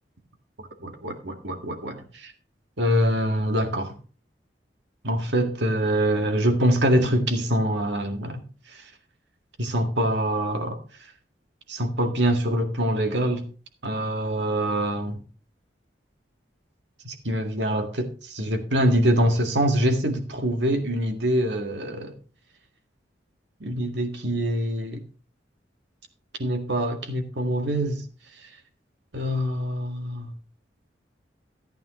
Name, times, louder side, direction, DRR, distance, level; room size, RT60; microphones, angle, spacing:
voice 1, 0.6-2.3 2.8-3.9 5.0-8.4 8.7-8.9 9.6-10.8 11.7-13.5 13.8-15.2 17.0-22.1 23.6-25.0 26.4-28.0 28.4-28.5 29.1-30.3, equal, 70° right, 1.9 m, -24 dB
14.5 x 9.0 x 3.1 m
head